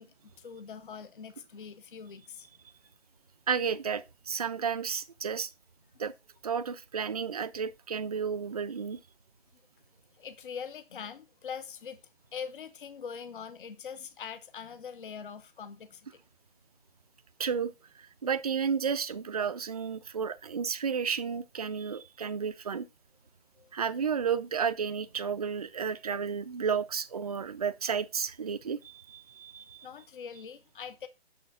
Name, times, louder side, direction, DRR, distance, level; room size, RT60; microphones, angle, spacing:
voice 1, 0.0-2.5 10.2-12.0 12.3-16.0 23.6-23.7 29.8-31.1, left 7 dB, 50° left, 0.9 m, -43 dB
voice 2, 3.5-5.5 6.0-6.1 6.4-9.0 17.4-17.7 18.2-22.9 23.7-29.9, right 6 dB, 35° right, 0.4 m, -32 dB
6.4 x 6.3 x 3.6 m
hypercardioid pair, 155°, 33 cm